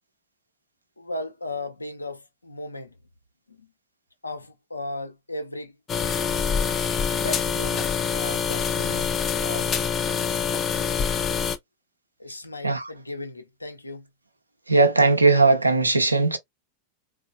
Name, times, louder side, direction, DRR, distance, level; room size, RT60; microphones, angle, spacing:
voice 1, 1.0-2.9 3.5-3.7 4.2-5.8 7.1-9.1 9.4-9.7 12.2-14.1, left 2 dB, 85° left, 0.8 m, -36 dB
sound 1, 5.9-11.6, left 7 dB, 25° left, 0.5 m, -25 dB
voice 2, 14.7-16.4, right 3 dB, 80° right, 0.7 m, -18 dB
3.9 x 2.3 x 2.3 m
figure-of-eight pair, 90°, 0 cm